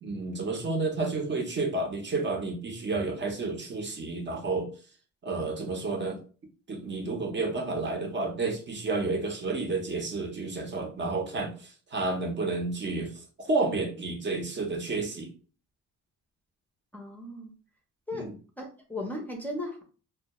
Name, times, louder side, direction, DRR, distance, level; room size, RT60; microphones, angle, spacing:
voice 1, 0.0-4.7 5.2-6.2 6.7-15.3 18.1-18.3, right 3 dB, 40° right, 2 dB, 0.7 m, -31 dB
voice 2, 16.9-17.5 18.1-18.3 18.6-19.8, left 1 dB, 5° left, 0 dB, 0.6 m, -36 dB
2.3 x 2.1 x 2.9 m, 0.37 s
cardioid pair, 90°, 30 cm